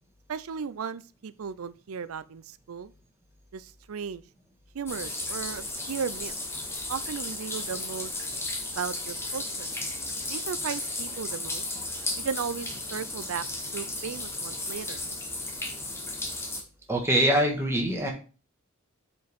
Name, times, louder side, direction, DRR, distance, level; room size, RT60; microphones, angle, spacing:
voice 1, 0.3-2.9 3.5-4.2 4.7-6.3 6.9-8.1 8.7-9.7 10.3-11.7 12.2-13.4 13.7-15.0, right 6 dB, 90° right, 0.5 m, -35 dB
sound 1, 4.9-16.6, left 2 dB, 10° left, 1.1 m, -34 dB
voice 2, 16.9-18.1, right 1 dB, 10° right, 1.5 m, -23 dB
7.6 x 4.6 x 3.5 m
head